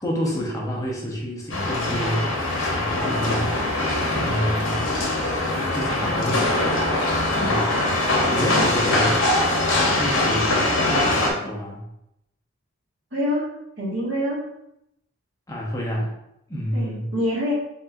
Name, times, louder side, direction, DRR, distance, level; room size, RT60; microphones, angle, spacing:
voice 1, 0.0-2.3 2.7-3.5 4.1-4.8 5.7-6.8 7.1-7.6 8.3-9.2 9.8-11.8 15.5-16.1 16.5-17.1, equal, 15° left, -3 dB, 0.7 m, -28 dB
sound 1, 1.5-11.3, left 2 dB, 70° left, 0.9 m, -22 dB
voice 2, 13.1-13.5 13.8-14.4 16.7-17.5, equal, 65° right, -5 dB, 1.7 m, -25 dB
5.2 x 3.6 x 2.6 m, 0.81 s
head